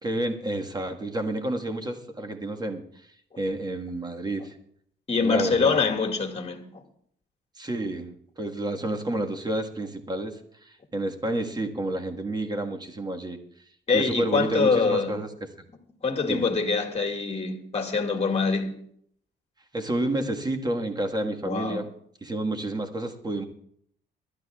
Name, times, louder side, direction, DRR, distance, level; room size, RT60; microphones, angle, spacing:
voice 1, 0.0-4.6 5.2-5.8 7.5-13.4 13.9-15.3 16.3-16.5 19.7-21.9 22.2-23.5, right 1 dB, 20° right, 1.6 m, -30 dB
voice 2, 5.1-6.6 13.9-15.1 16.0-18.8 21.4-21.8, left 4 dB, 30° left, 2.0 m, -24 dB
26.0 x 12.0 x 2.4 m
cardioid pair, 90°, 20 cm